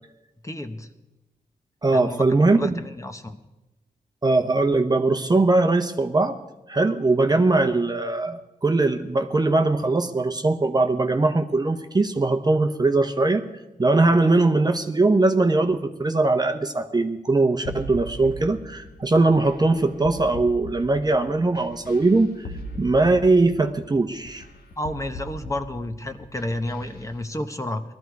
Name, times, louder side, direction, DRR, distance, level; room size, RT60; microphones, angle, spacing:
voice 1, 0.4-0.9 1.9-3.4 24.8-27.8, left 1 dB, 20° left, 6 dB, 1.1 m, -31 dB
voice 2, 1.8-2.7 4.2-6.4 6.7-13.4 13.8-22.5 22.8-24.4, right 2 dB, 25° right, 6 dB, 1.0 m, -21 dB
sound 1, 17.7-27.2, equal, 80° left, 1.4 m, -39 dB
18.5 x 13.0 x 4.7 m, 1.0 s
cardioid pair, 75°, 16 cm